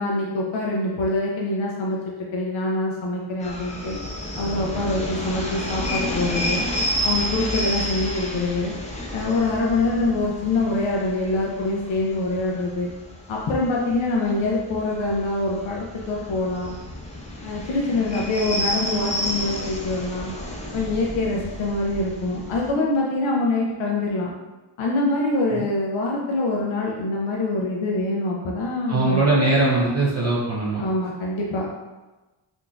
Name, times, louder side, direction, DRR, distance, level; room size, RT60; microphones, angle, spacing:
voice 1, 0.0-2.0 2.3-4.0 4.4-6.7 7.0-8.7 9.1-12.9 13.3-16.7 17.4-20.3 20.7-24.3 24.8-29.3 30.8-31.7, left 2 dB, 75° left, -2 dB, 0.6 m, -24 dB
sound 1, 3.4-22.7, equal, 15° left, 0.5 m, -31 dB
voice 2, 28.9-30.8, right 2 dB, 35° right, -6 dB, 0.6 m, -20 dB
3.7 x 2.5 x 2.3 m, 1.1 s
wide cardioid pair, 85°, 48 cm